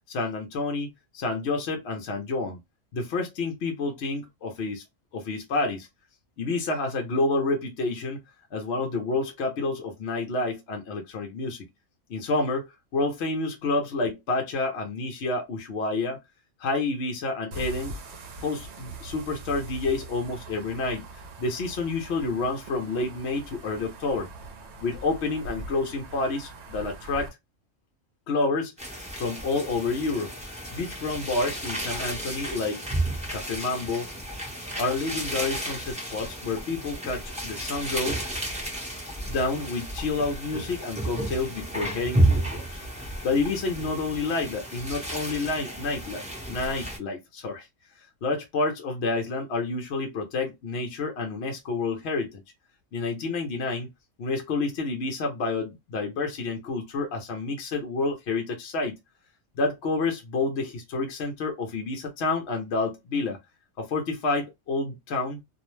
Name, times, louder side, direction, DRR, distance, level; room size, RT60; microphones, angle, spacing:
voice 1, 0.1-2.6 2.9-4.8 5.1-5.9 6.4-8.2 8.5-11.6 12.1-12.7 12.9-16.2 16.6-17.9 18.4-21.1 21.4-24.3 24.8-27.3 28.3-28.7 29.2-30.3 30.7-32.8 33.3-34.1 34.8-38.2 39.3-42.6 43.2-47.7 48.2-52.4 52.9-53.9 54.2-59.0 59.5-63.4 63.8-65.4, left 3 dB, 65° left, 0.9 m, -29 dB
sound 1, 17.5-27.3, right 2 dB, 65° right, 0.9 m, -42 dB
sound 2, 28.8-47.0, right 1 dB, 5° right, 0.7 m, -32 dB
2.6 x 2.0 x 3.0 m
omnidirectional pair, 1.3 m